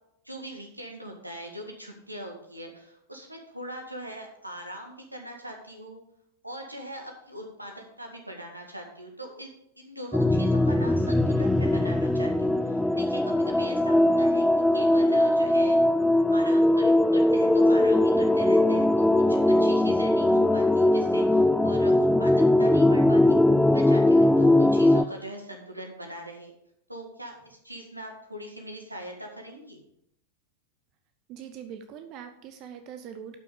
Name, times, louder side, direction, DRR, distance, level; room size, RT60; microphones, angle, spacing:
voice 1, 0.2-6.0 6.4-9.5 9.8-14.5 14.7-15.8 16.3-23.4 23.7-26.5 26.9-29.8, equal, 85° right, 2 dB, 1.9 m, -41 dB
sound 1, 10.1-25.1, left 1 dB, 5° left, 0.4 m, -21 dB
voice 2, 31.3-33.4, right 8 dB, 40° right, 8 dB, 0.8 m, -42 dB
11.5 x 6.0 x 5.2 m, 0.77 s
figure-of-eight pair, 90°, 0 cm